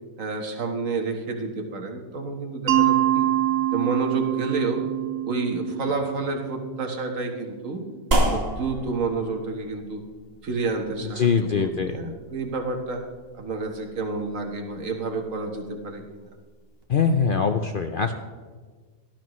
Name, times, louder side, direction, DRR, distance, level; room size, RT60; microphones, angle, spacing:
voice 1, 0.2-3.3 3.7-4.8 5.3-7.8 8.2-10.0 10.4-13.0 13.3-16.3, right 3 dB, 60° right, 3 dB, 1.7 m, -30 dB
Mallet percussion, 2.7-7.4, right 12 dB, 85° right, 1.4 m, -25 dB
sound 1, 8.1-16.8, right 1 dB, 40° right, 1.8 m, -32 dB
voice 2, 11.2-12.0 16.9-18.1, left 6 dB, 60° left, 6 dB, 0.5 m, -22 dB
18.0 x 12.0 x 3.1 m, 1.5 s
omnidirectional pair, 1.6 m